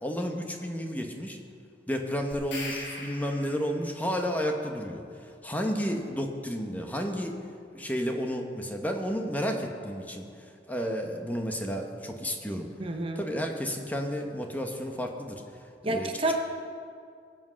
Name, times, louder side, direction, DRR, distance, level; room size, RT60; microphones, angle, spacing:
voice 1, 0.0-1.4 1.9-7.4 7.7-12.7 13.2-16.3, equal, 10° left, 3 dB, 1.1 m, -32 dB
sound 1, 2.3-3.9, left 2 dB, 85° left, 4.5 m, -39 dB
voice 2, 12.8-13.2 15.8-16.3, right 2 dB, 30° right, 4 dB, 0.9 m, -29 dB
21.0 x 7.6 x 6.3 m, 2.3 s
head